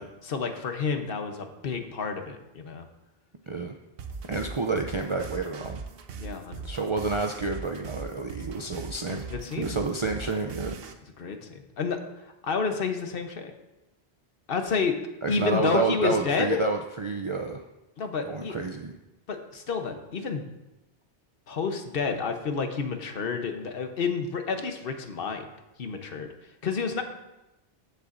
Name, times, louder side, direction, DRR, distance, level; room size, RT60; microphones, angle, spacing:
voice 1, 0.0-2.9 6.2-6.6 9.1-9.8 11.2-13.5 14.5-15.0 15.3-16.6 18.0-18.6 19.3-20.5 21.5-25.4 25.8-26.3 26.6-27.0, left 5 dB, 60° left, 6 dB, 1.0 m, -30 dB
sound 1, 4.0-10.9, right 5 dB, 70° right, 0.9 m, -40 dB
voice 2, 4.3-5.8 6.6-9.3 9.6-10.8 15.2-17.6 18.2-18.9, right 3 dB, 45° right, 3 dB, 0.4 m, -29 dB
15.0 x 6.8 x 2.5 m, 0.98 s
omnidirectional pair, 1.1 m